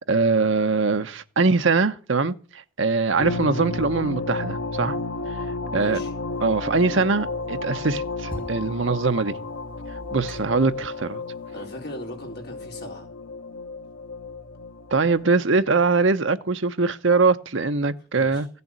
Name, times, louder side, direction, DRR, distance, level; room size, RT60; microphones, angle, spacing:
voice 1, 0.0-5.0 5.7-6.0 6.4-9.4 10.1-11.2 14.9-18.5, right 4 dB, 65° right, 0.9 m, -22 dB
sound 1, 3.2-15.3, left 3 dB, 80° left, 0.9 m, -32 dB
voice 2, 5.7-6.1 11.5-13.1 18.1-18.4, left 1 dB, 50° left, 4.4 m, -38 dB
sound 2, 6.3-11.7, equal, 5° left, 3.5 m, -44 dB
15.5 x 6.9 x 8.3 m
head